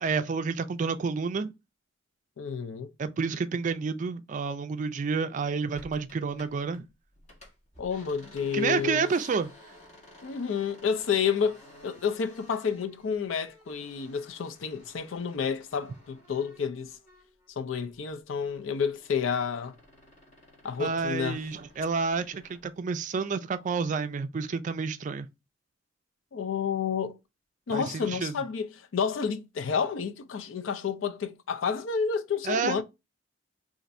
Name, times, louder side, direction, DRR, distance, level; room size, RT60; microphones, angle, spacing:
voice 1, 0.0-1.5 3.0-6.8 8.5-9.5 20.8-25.3 27.7-28.3 32.4-32.8, right 5 dB, 40° right, 0.3 m, -29 dB
voice 2, 2.4-2.9 7.8-9.1 10.2-16.9 17.6-19.8 20.6-21.4 26.3-27.2 27.7-32.8, left 6 dB, 85° left, 0.4 m, -30 dB
sound 1, 5.7-6.8 7.1-17.5 17.8-22.7, left 1 dB, 35° left, 1.1 m, -54 dB
2.5 x 2.5 x 4.1 m
head